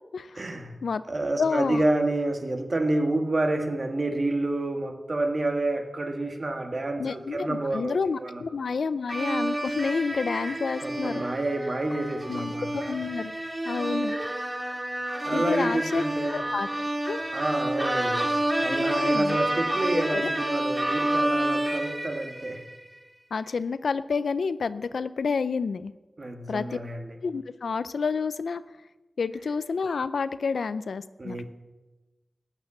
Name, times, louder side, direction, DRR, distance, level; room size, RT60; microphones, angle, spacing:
voice 1, 0.4-0.8 1.1-8.4 10.5-12.9 15.2-16.4 17.3-22.6 26.2-27.2 31.2-31.4, right 2 dB, 50° right, 5 dB, 1.8 m, -29 dB
voice 2, 1.4-1.8 7.0-11.2 12.3-13.3 13.7-14.2 15.3-16.0 16.3-17.2 18.8-19.4 19.9-20.3 23.3-25.9 26.5-26.8 27.2-28.6 29.2-31.4, left 5 dB, 90° left, 14 dB, 0.4 m, -29 dB
sound 1, 9.1-22.8, right 1 dB, 25° right, 2.0 m, -29 dB
13.5 x 8.9 x 7.1 m, 1.1 s
cardioid pair, 50°, 0 cm